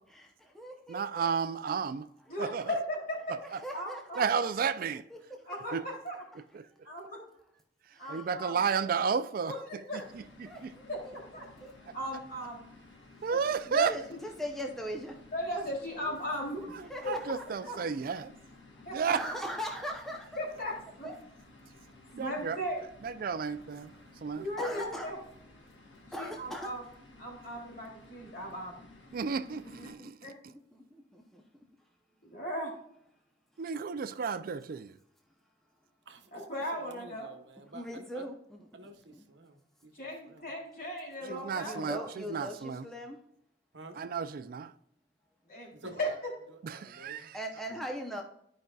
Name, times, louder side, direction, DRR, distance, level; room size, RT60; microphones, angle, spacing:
voice 1, 0.1-1.3 2.4-2.6 3.5-4.3 7.9-8.3 8.8-8.9 10.5-11.2 11.6-11.9 13.7-15.2 16.9-17.4 18.7-18.8 19.1-20.3 21.0-21.2 24.6-25.1 26.1-26.7 29.5-30.1 30.5-31.4 37.7-38.6 39.1-39.3 41.2-43.2 47.3-48.2, equal, ahead, 0.7 m, -40 dB
voice 2, 0.9-2.1 2.4-2.7 3.3-3.6 4.2-5.0 5.7-5.8 6.5-6.7 8.1-9.6 10.4-10.7 13.2-13.9 16.7-18.3 18.9-19.3 22.2-22.6 23.0-23.9 24.2-24.4 29.1-30.3 33.6-35.0 41.3-42.8 44.0-44.7 46.6-47.4, right 6 dB, 50° right, 0.4 m, -32 dB
voice 3, 2.3-3.4 3.7-4.3 5.5-6.2 6.8-7.2 8.0-8.6 9.5-10.0 10.9-11.4 11.9-12.6 13.3-13.4 14.1-14.2 15.3-16.7 17.0-17.1 17.7-17.8 18.8-19.0 20.4-21.1 22.1-22.8 24.4-25.2 26.2-26.8 27.2-28.8 30.2-30.3 32.2-32.7 36.3-37.3 39.9-42.1 45.5-45.7 46.0-46.1, equal, 55° left, 3.0 m, -37 dB
sound 1, 10.0-29.9, left 2 dB, 90° left, 1.7 m, -56 dB
voice 4, 36.1-38.3 38.7-40.5 43.7-44.0 45.7-46.2 46.5-47.3, right 2 dB, 75° right, 1.0 m, -50 dB
12.5 x 5.2 x 2.3 m
head